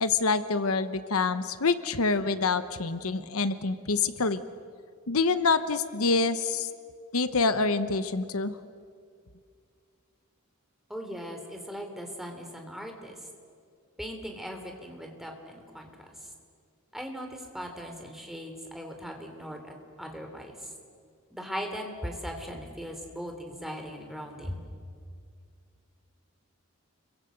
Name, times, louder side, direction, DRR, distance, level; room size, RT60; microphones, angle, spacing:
voice 1, 0.0-4.4 5.1-6.7 7.1-8.6, left 4 dB, 70° left, 11 dB, 1.0 m, -26 dB
voice 2, 10.9-13.2 14.0-15.9 16.9-20.5 21.3-24.6, equal, ahead, 3 dB, 3.2 m, -39 dB
29.5 x 23.0 x 8.0 m, 2.2 s
head